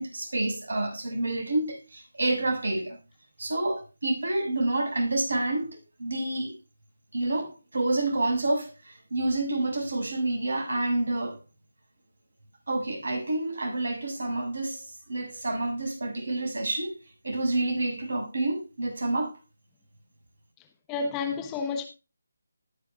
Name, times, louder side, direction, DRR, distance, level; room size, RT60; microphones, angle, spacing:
voice 1, 0.0-3.0 3.4-6.6 7.1-11.4 12.7-17.0 17.2-19.4, right 2 dB, 70° right, 6.6 m, -28 dB
voice 2, 20.9-21.8, left 4 dB, 15° left, 1.2 m, -30 dB
19.5 x 7.0 x 2.4 m
figure-of-eight pair, 155°, 0 cm